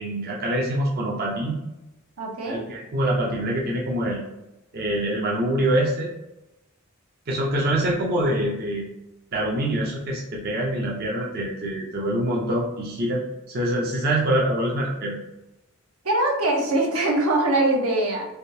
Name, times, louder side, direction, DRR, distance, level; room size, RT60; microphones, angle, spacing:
voice 1, 0.0-1.6 2.5-4.2 4.7-6.1 7.3-8.8 9.3-15.2, right 1 dB, 45° right, -3 dB, 0.5 m, -25 dB
voice 2, 2.2-2.6 16.0-18.3, right 2 dB, 80° right, 0 dB, 0.8 m, -22 dB
3.4 x 2.6 x 2.7 m, 0.97 s
head